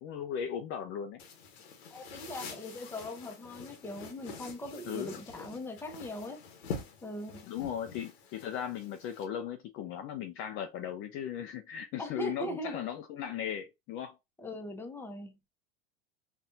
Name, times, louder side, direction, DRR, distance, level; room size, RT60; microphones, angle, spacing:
voice 1, 0.0-1.2 4.9-5.1 7.5-14.2, left 9 dB, 40° left, 0.5 m, -37 dB
sound 1, 1.2-9.3, left 5 dB, 80° left, 1.1 m, -46 dB
voice 2, 1.9-6.4 7.0-7.4 12.0-12.8 14.4-15.5, left 1 dB, 5° left, 0.8 m, -40 dB
4.2 x 2.4 x 2.7 m
hypercardioid pair, 110°, 31 cm